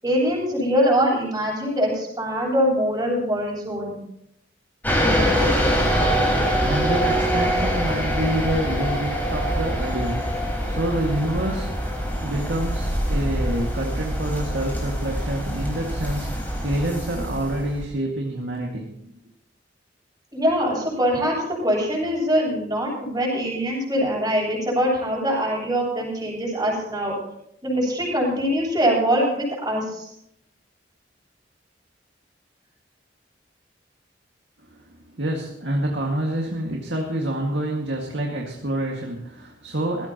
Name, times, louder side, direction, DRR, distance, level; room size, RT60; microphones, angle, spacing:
voice 1, 0.0-4.0 20.3-21.4 21.6-27.1 27.6-30.1, equal, 20° right, -5 dB, 7.6 m, -23 dB
sound 1, 4.8-17.8, equal, 10° left, 4.7 m, -24 dB
voice 2, 6.3-11.8 12.2-18.9 34.7-34.8 35.2-40.1, right 1 dB, 70° right, 0 dB, 2.1 m, -27 dB
20.0 x 15.5 x 3.0 m, 0.75 s
head